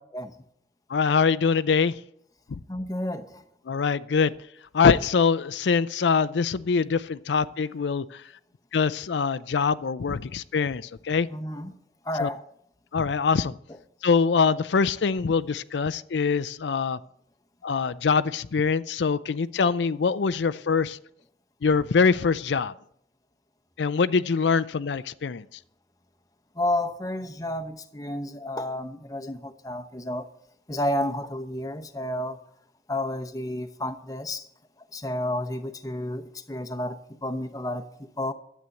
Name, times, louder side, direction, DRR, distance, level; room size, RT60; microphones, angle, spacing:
voice 1, 0.9-2.0 2.5-2.6 3.7-4.3 4.7-8.3 8.7-11.3 12.2-12.3 12.9-13.5 14.0-17.0 17.6-21.0 21.6-22.7 23.8-25.6, left 5 dB, 90° left, 0.5 m, -24 dB
voice 2, 2.7-3.4 11.3-11.7 12.0-12.4 26.6-30.3 30.7-32.4 32.9-34.5 34.9-37.9 38.2-38.3, left 1 dB, 20° left, 0.8 m, -31 dB
12.5 x 8.3 x 7.7 m
head